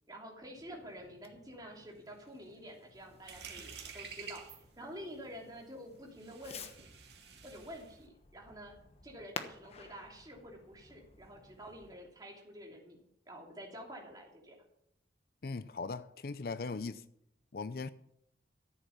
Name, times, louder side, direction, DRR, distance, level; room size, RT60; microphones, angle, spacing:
voice 1, 0.1-4.4 4.8-6.7 7.4-8.8 9.0-13.0 13.3-14.6, equal, 20° right, 3.1 m, -49 dB
Fireworks, 0.5-11.9, left 4 dB, 35° left, 1.1 m, -53 dB
sound 1, 3.0-8.1, right 6 dB, 70° right, 2.3 m, -50 dB
voice 2, 15.4-17.0 17.5-17.9, left 4 dB, 55° left, 0.5 m, -39 dB
14.0 x 8.2 x 7.2 m
head